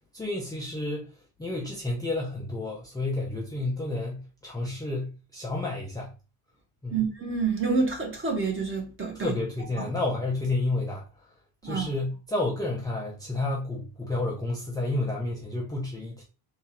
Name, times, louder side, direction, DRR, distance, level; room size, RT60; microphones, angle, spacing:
voice 1, 0.1-1.1 1.4-6.1 6.8-7.0 9.2-11.0 11.6-16.2, left 2 dB, 10° left, 0.6 m, -30 dB
voice 2, 6.9-9.3 9.8-9.9 11.6-11.9, right 4 dB, 25° right, 1.5 m, -28 dB
3.6 x 2.8 x 4.3 m
cardioid pair, 155°, 46 cm